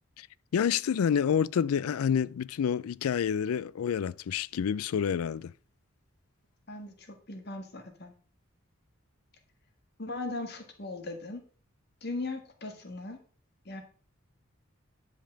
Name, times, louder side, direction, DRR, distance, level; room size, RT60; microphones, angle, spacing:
voice 1, 0.5-5.5, left 7 dB, 85° left, 0.4 m, -28 dB
voice 2, 6.7-8.1 10.0-11.4 12.0-13.2 13.6-13.8, left 2 dB, 50° left, 1.6 m, -38 dB
10.5 x 5.3 x 5.2 m
head